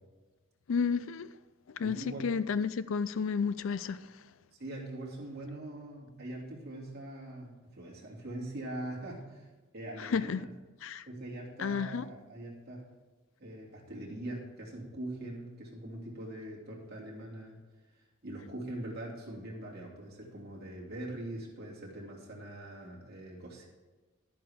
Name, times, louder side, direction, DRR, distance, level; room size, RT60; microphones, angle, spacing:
voice 1, 0.7-1.3 1.7-4.0 10.0-10.5 10.8-11.0 11.6-12.1, left 5 dB, 65° left, 0.4 m, -31 dB
voice 2, 1.8-2.3 4.6-9.5 9.7-10.5 11.1-12.8 13.4-17.5 18.2-23.7, right 1 dB, 50° right, 2.8 m, -42 dB
11.5 x 10.0 x 3.6 m
head